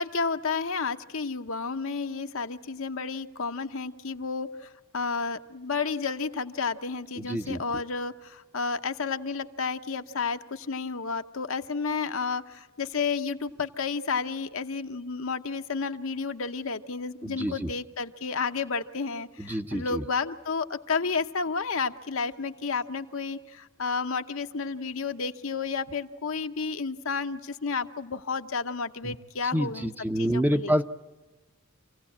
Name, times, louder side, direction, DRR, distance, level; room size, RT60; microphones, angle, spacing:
voice 1, 0.0-30.8, left 4 dB, 65° left, 7 dB, 0.9 m, -31 dB
voice 2, 7.2-7.6 17.2-17.7 19.4-20.0 29.0-29.1 29.5-30.8, equal, 10° right, 8 dB, 0.7 m, -27 dB
26.5 x 16.5 x 8.6 m, 1.2 s
head